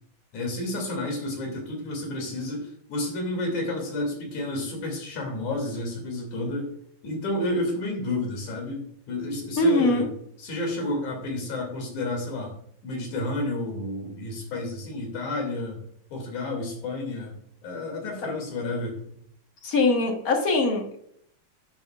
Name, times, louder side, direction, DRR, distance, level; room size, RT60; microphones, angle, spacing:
voice 1, 0.3-6.7 7.0-10.1 10.4-12.6 12.8-15.8 16.1-19.0, left 2 dB, 75° left, 1 dB, 3.9 m, -31 dB
voice 2, 9.6-10.1 19.6-21.0, left 3 dB, 45° left, 2 dB, 1.2 m, -22 dB
10.5 x 9.3 x 2.4 m, 0.68 s
omnidirectional pair, 3.4 m